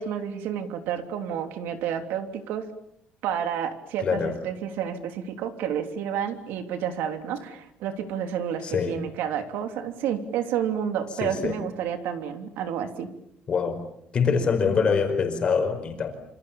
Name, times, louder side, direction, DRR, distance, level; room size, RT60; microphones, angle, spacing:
voice 1, 0.0-2.6 3.2-13.1, right 8 dB, 75° right, 7 dB, 3.2 m, -30 dB
voice 2, 4.0-4.4 8.6-9.0 11.2-11.6 13.5-13.8 14.1-16.1, left 5 dB, 30° left, 6 dB, 5.0 m, -24 dB
28.0 x 27.5 x 7.2 m, 0.74 s
cardioid pair, 180°, 4 cm